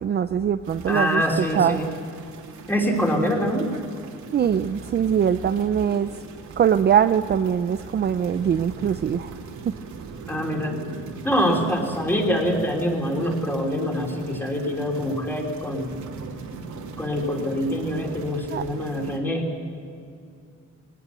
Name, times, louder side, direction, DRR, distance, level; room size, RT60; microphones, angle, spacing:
voice 1, 0.0-1.2 1.5-1.8 4.3-6.1 6.6-9.3 9.6-9.8 18.5-18.7, right 8 dB, 35° right, 10 dB, 0.5 m, -22 dB
sound 1, 0.6-19.2, right 4 dB, 75° right, 3.0 m, -40 dB
voice 2, 0.9-1.9 2.7-3.7 10.3-10.7 11.2-16.0 17.0-19.5, equal, 5° left, 0 dB, 3.4 m, -25 dB
22.0 x 19.0 x 8.2 m, 2.5 s
cardioid pair, 160°, 30 cm